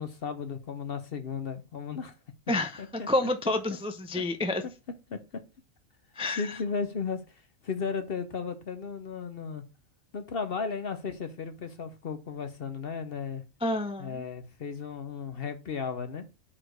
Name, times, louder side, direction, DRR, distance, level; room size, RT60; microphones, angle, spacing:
voice 1, 0.0-2.2 2.8-3.1 5.1-5.2 6.4-9.6 10.1-13.4 14.0-16.3, left 5 dB, 50° left, 0.9 m, -35 dB
voice 2, 2.5-4.6 6.2-6.6 13.6-14.2, left 2 dB, 5° right, 0.4 m, -29 dB
5.0 x 4.3 x 6.1 m
omnidirectional pair, 1.4 m